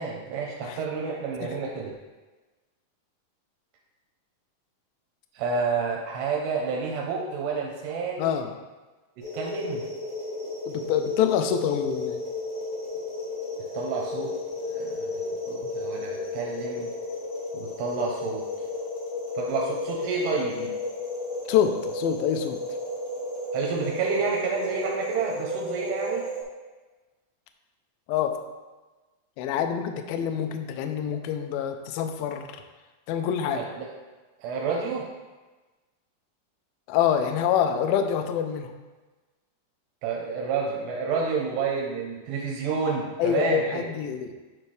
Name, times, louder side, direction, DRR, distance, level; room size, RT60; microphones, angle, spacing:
voice 1, 0.0-1.9 5.3-8.3 9.2-9.8 13.7-14.3 14.7-16.9 17.5-18.4 19.4-20.7 23.5-26.3 33.5-33.9 34.4-35.1 40.0-43.9, right 5 dB, 85° right, -2 dB, 2.9 m, -29 dB
voice 2, 8.2-8.5 10.7-12.2 21.5-22.6 28.1-28.3 29.4-32.5 33.1-33.6 36.9-38.7 43.2-44.3, left 8 dB, 85° left, 6 dB, 2.1 m, -26 dB
sound 1, 9.2-26.4, left 2 dB, 70° left, 0.7 m, -33 dB
9.7 x 4.3 x 3.2 m, 1.2 s
omnidirectional pair, 4.8 m